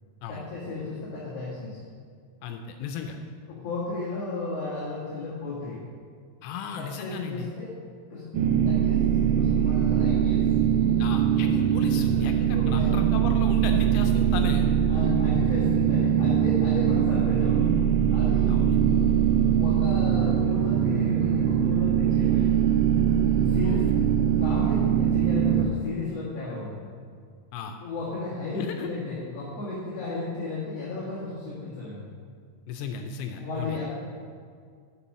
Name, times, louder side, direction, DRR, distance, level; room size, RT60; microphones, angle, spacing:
voice 1, 0.3-1.8 3.5-5.8 6.8-7.7 8.1-10.4 12.5-13.1 14.9-17.8 18.1-18.5 18.8-19.2 19.5-22.6 23.5-23.8 24.4-26.9 27.8-32.1 33.3-33.9, left 3 dB, 50° left, -9 dB, 2.3 m, -34 dB
voice 2, 2.4-3.2 6.4-7.5 11.0-14.7 18.5-18.8 23.6-23.9 27.5-27.8 28.5-28.9 32.7-33.8, left 6 dB, 85° left, 5 dB, 2.5 m, -35 dB
sound 1, 8.3-25.7, right 9 dB, 80° right, 1.8 m, -22 dB
7.0 x 6.1 x 7.3 m, 2.1 s
omnidirectional pair, 4.4 m